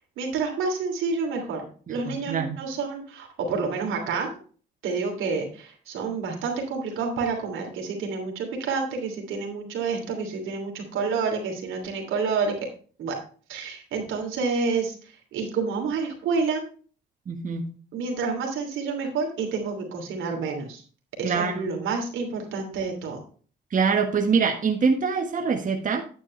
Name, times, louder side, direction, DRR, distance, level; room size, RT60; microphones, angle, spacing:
voice 1, 0.2-4.3 4.8-12.5 13.0-13.1 13.5-14.9 15.3-16.6 17.9-20.8 21.2-23.2, right 4 dB, 85° right, 2 dB, 3.0 m, -29 dB
voice 2, 1.9-2.6 17.3-17.7 21.2-21.6 23.7-26.0, right 5 dB, 40° right, 2 dB, 1.4 m, -24 dB
9.5 x 8.7 x 3.2 m, 0.40 s
cardioid pair, 90°, 20 cm